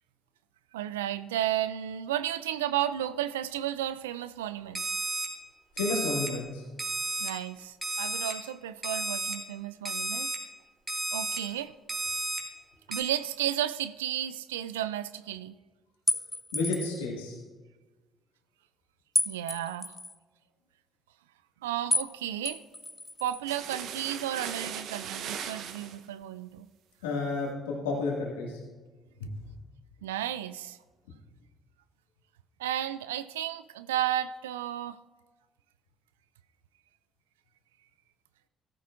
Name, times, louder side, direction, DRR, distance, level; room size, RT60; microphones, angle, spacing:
voice 1, 0.7-4.9 7.2-10.3 11.1-11.7 12.9-15.5 19.3-20.0 21.6-22.6 23.2-26.7 30.0-30.8 32.6-35.0, right 12 dB, 85° right, 0.3 m, -33 dB
Alarm, 4.8-5.3 5.8-6.3 6.8-7.3 7.8-8.3 8.8-9.3 9.9-10.4 10.9-11.4 11.9-12.4 12.9-13.0, right 3 dB, 20° right, 2.4 m, -32 dB
voice 2, 5.8-6.6 16.5-17.4 27.0-28.6 29.2-29.3, left 3 dB, 85° left, 1.9 m, -31 dB
sound 1, 16.1-17.0 19.2-20.1 21.9-22.1 22.5-23.4, left 2 dB, 15° left, 0.6 m, -31 dB
sound 2, 23.4-26.0, right 8 dB, 65° right, 0.8 m, -38 dB
14.5 x 13.0 x 2.5 m
hypercardioid pair, 50°, 0 cm